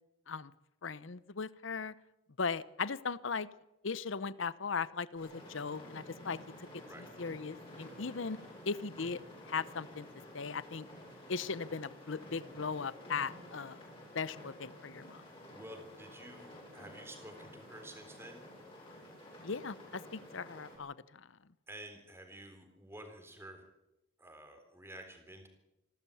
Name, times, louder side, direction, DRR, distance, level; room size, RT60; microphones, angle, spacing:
voice 1, 0.8-1.9 2.4-3.5 3.8-6.4 6.7-6.8 7.2-8.4 8.7-9.2 9.5-10.1 10.3-10.9 11.3-13.8 14.1-15.2 19.4-21.3, left 5 dB, 65° left, 18 dB, 0.7 m, -38 dB
sound 1, 5.1-20.8, left 1 dB, 25° left, 7.6 m, -52 dB
voice 2, 15.5-18.5 21.7-23.6 24.2-25.5, right 1 dB, 10° right, 5 dB, 3.8 m, -50 dB
27.0 x 12.5 x 8.5 m, 0.91 s
head